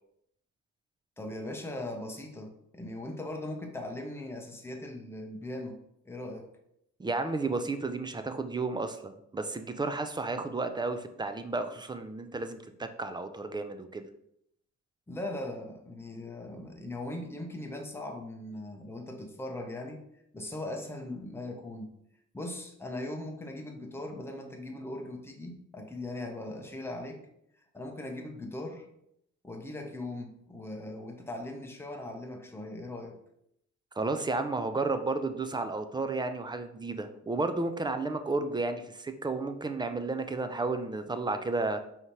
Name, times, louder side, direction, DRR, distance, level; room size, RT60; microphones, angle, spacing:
voice 1, 1.2-5.8 6.0-6.5 15.1-20.0 20.3-21.9 22.3-27.2 27.7-28.9 29.4-33.2, left 1 dB, 10° left, 2 dB, 0.7 m, -39 dB
voice 2, 7.0-14.1 34.0-41.8, right 3 dB, 15° right, 8 dB, 0.3 m, -32 dB
4.9 x 2.8 x 3.0 m, 0.76 s
cardioid pair, 90°, 30 cm